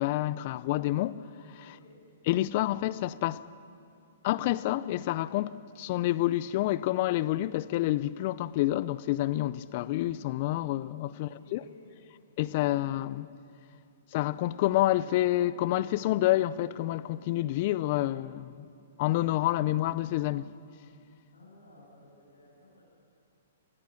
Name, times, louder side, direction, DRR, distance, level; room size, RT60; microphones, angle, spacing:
voice 1, 0.0-1.6 2.3-3.4 4.2-11.6 12.4-13.3 14.1-18.7 19.0-20.4, left 15 dB, 45° left, 0.5 m, -28 dB
voice 2, 1.6-1.9 11.1-12.0 21.3-22.8, left 1 dB, 85° left, 7.5 m, -56 dB
25.0 x 19.5 x 6.5 m
hypercardioid pair, 125°, 0 cm